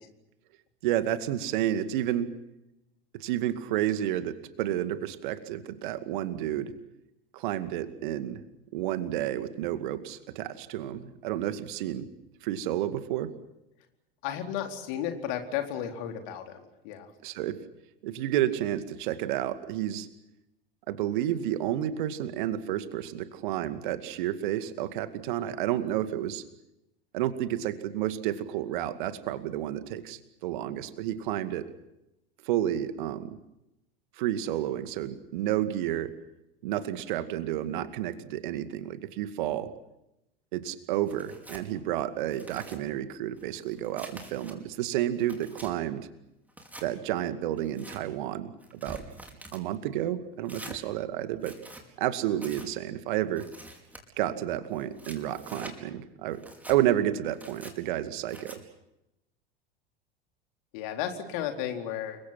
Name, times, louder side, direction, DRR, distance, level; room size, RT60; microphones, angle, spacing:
voice 1, 0.8-2.4 3.1-6.7 7.3-8.4 8.7-12.1 12.4-13.3 17.2-17.6 18.0-20.1 20.9-26.4 27.1-31.7 32.4-33.4 34.2-36.1 36.6-39.7 40.5-46.1 46.8-49.0 49.5-51.6 52.0-53.5 54.2-58.6, right 12 dB, 55° right, 12 dB, 2.2 m, -31 dB
voice 2, 14.2-17.1 60.7-62.2, left 10 dB, 55° left, 5 dB, 4.3 m, -33 dB
Tearing, 41.1-41.7 42.2-42.8 43.4-44.5 45.0-45.7 46.5-46.9 47.6-48.0 48.6-49.6 50.5-50.8 51.4-51.8 52.4-52.7 53.4-54.0 54.7-55.8 56.3-56.8 57.3-57.7 58.3-58.6, right 1 dB, 5° right, 5.1 m, -46 dB
29.5 x 23.5 x 6.0 m, 0.89 s
figure-of-eight pair, 80°, 29 cm